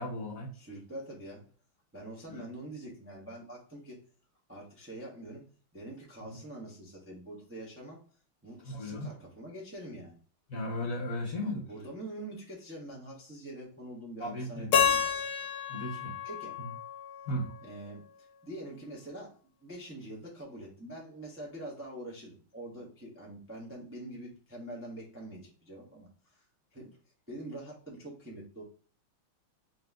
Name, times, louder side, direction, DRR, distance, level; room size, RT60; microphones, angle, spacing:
voice 1, 0.0-0.5 2.3-2.4 6.2-6.4 8.6-9.1 10.5-11.6 14.2-14.7 15.7-16.1 16.6-16.7 17.3-17.5, left 1 dB, 55° left, -2 dB, 1.0 m, -36 dB
voice 2, 0.5-1.4 1.9-4.0 4.5-5.4 5.7-8.0 8.4-10.1 11.3-15.0 16.2-16.6 17.6-26.4 26.7-27.0 27.3-28.6, right 1 dB, 15° right, -4 dB, 0.5 m, -45 dB
Keyboard (musical), 14.7-17.7, left 8 dB, 80° left, 1.5 m, -30 dB
4.1 x 3.1 x 3.4 m, 0.41 s
omnidirectional pair, 2.3 m